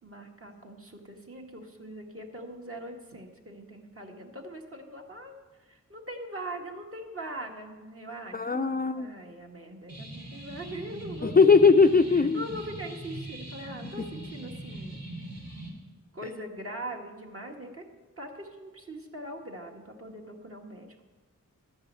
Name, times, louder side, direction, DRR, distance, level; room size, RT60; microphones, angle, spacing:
voice 1, 0.0-11.4 12.1-15.0 16.1-17.8 18.2-21.0, right 1 dB, 40° right, 1 dB, 1.8 m, -41 dB
voice 2, 8.3-9.1 11.2-12.4, left 4 dB, 30° left, 8 dB, 0.4 m, -20 dB
sound 1, 9.9-15.7, right 1 dB, 80° right, 3.0 m, -41 dB
12.5 x 5.4 x 8.2 m, 1.3 s
wide cardioid pair, 45°, 33 cm